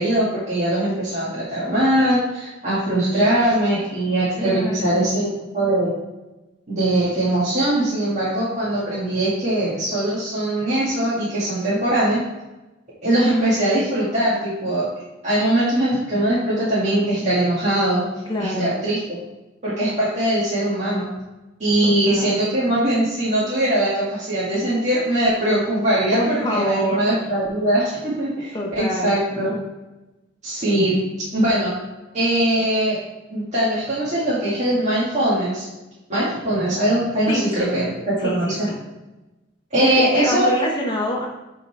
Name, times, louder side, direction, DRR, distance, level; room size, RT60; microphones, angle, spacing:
voice 1, 0.0-5.9 6.7-12.2 13.0-14.9 15.2-18.0 18.4-19.2 19.6-21.1 21.6-29.5 30.4-31.0 31.3-31.7 32.1-33.0 33.3-35.7 36.1-37.9 38.2-38.7 39.7-40.5, right 1 dB, 35° right, -10 dB, 1.9 m, -21 dB
voice 2, 4.4-5.1 18.3-18.8 21.8-22.5 26.1-27.0 28.5-29.2 37.3-37.8 38.2-38.8 39.8-41.3, equal, 25° left, -1 dB, 0.7 m, -26 dB
9.2 x 3.8 x 3.3 m, 1.0 s
head